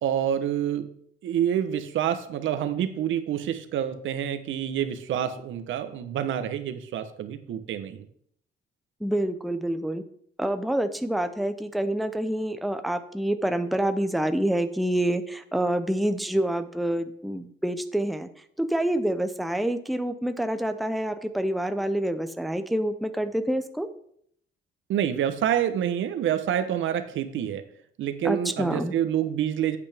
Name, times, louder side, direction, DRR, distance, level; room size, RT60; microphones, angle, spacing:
voice 1, 0.0-0.9 1.2-8.0 24.9-27.6 28.0-29.8, right 10 dB, 75° right, 9 dB, 1.0 m, -27 dB
voice 2, 9.0-10.0 10.4-18.3 18.6-23.9 28.2-28.9, right 1 dB, ahead, 9 dB, 0.7 m, -27 dB
8.8 x 8.2 x 3.5 m, 0.65 s
cardioid pair, 90°, 20 cm